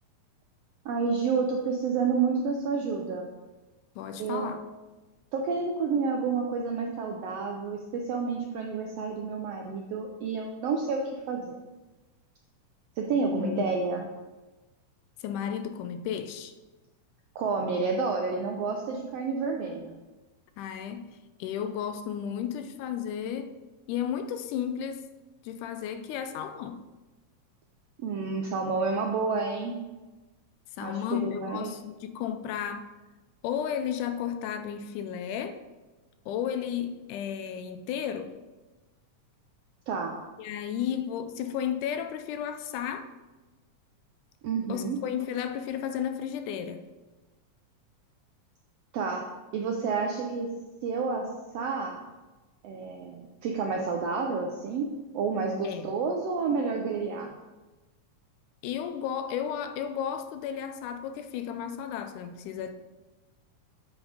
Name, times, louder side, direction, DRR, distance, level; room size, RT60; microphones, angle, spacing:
voice 1, 0.8-3.3 4.2-4.6 5.3-11.5 13.0-14.0 17.3-19.9 28.0-29.8 30.8-31.7 39.9-40.2 44.4-45.0 48.9-49.2 49.5-50.5 50.8-51.3 51.5-52.0 52.6-57.3, right 4 dB, 80° right, 2 dB, 1.4 m, -29 dB
voice 2, 4.0-4.6 13.3-14.1 15.2-16.5 20.6-23.6 23.9-25.1 25.4-26.8 30.8-32.9 33.4-35.6 36.3-38.4 40.4-43.1 44.7-46.9 55.6-55.9 58.6-62.7, left 9 dB, 80° left, 9 dB, 2.1 m, -33 dB
8.1 x 5.2 x 4.9 m, 1.2 s
omnidirectional pair, 3.6 m